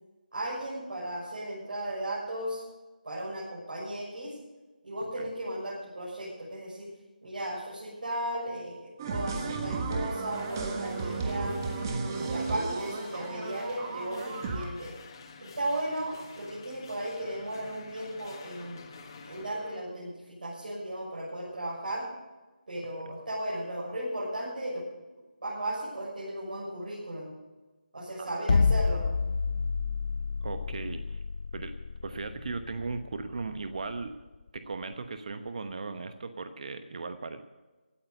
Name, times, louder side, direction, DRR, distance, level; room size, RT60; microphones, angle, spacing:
voice 1, 0.3-2.6 3.0-4.4 4.8-6.9 7.2-11.5 12.0-14.9 15.4-18.8 19.2-22.1 22.7-24.8 25.4-27.3 27.9-29.1, right 1 dB, 65° right, -7 dB, 6.5 m, -35 dB
sound 1, 9.0-14.7, right 3 dB, 20° right, 1.4 m, -34 dB
sound 2, 10.3-19.8, left 4 dB, 30° left, 1.3 m, -50 dB
sound 3, 28.5-34.7, left 4 dB, 50° left, 0.6 m, -29 dB
voice 2, 30.4-31.2 31.5-31.7 32.0-34.1 34.5-37.4, right 4 dB, 45° right, 9 dB, 1.0 m, -37 dB
16.5 x 9.1 x 6.7 m, 1.2 s
figure-of-eight pair, 165°, 5 cm